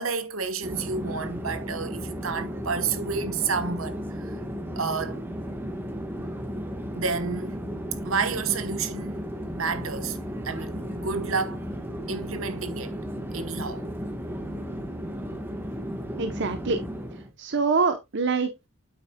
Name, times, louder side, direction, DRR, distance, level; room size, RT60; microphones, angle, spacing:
voice 1, 0.0-4.3 4.8-5.2 6.9-7.6 8.0-9.2 9.5-10.2 10.4-11.6 12.1-12.9 13.3-13.8, right 5 dB, 75° right, 1.2 m, -30 dB
Conversation / Chatter / Fixed-wing aircraft airplane, 0.6-17.3, equal, 10° right, 1.2 m, -34 dB
voice 2, 16.2-16.8 17.4-18.7, right 4 dB, 60° right, 0.8 m, -25 dB
8.8 x 7.9 x 2.2 m
head